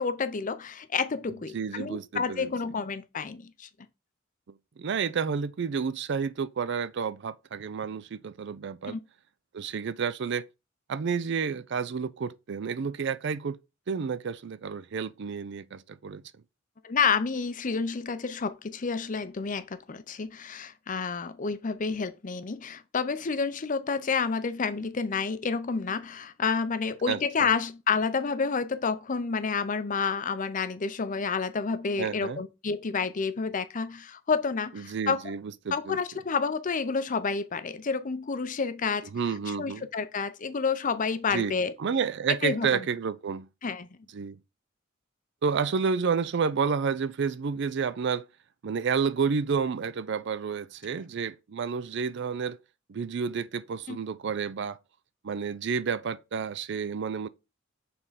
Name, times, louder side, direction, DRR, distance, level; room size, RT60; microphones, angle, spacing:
voice 1, 0.0-3.7 8.9-9.0 16.8-35.2 35.7-39.1 39.6-41.7 42.4-42.9 43.6-43.9 53.9-54.0, left 5 dB, 40° left, 0.6 m, -29 dB
voice 2, 1.5-2.5 4.8-9.0 9.5-10.4 10.9-13.6 13.9-16.2 27.1-27.5 32.0-32.4 34.7-36.0 39.1-39.9 41.3-43.5 44.1-44.4 45.4-48.2 48.6-52.6 52.9-54.8 55.2-57.3, right 6 dB, 60° right, 0.4 m, -30 dB
6.9 x 3.6 x 4.1 m
head